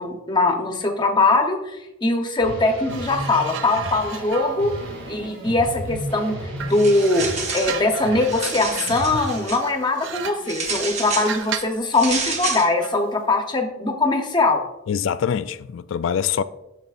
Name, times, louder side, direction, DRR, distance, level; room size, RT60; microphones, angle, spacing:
voice 1, 0.0-4.7 5.1-6.3 6.6-7.3 7.5-14.6, left 2 dB, 20° left, 0.9 m, -21 dB
sound 1, 2.4-9.3, equal, 80° right, 3.0 m, -34 dB
sound 2, 2.9-6.1 6.6-11.8 12.8-13.0, right 8 dB, 60° right, 0.5 m, -36 dB
sound 3, 6.7-7.8 8.2-9.6 10.5-11.3 11.9-12.7, right 4 dB, 35° right, 0.9 m, -29 dB
voice 2, 14.9-16.4, left 8 dB, 65° left, 0.3 m, -24 dB
10.5 x 6.8 x 2.5 m
head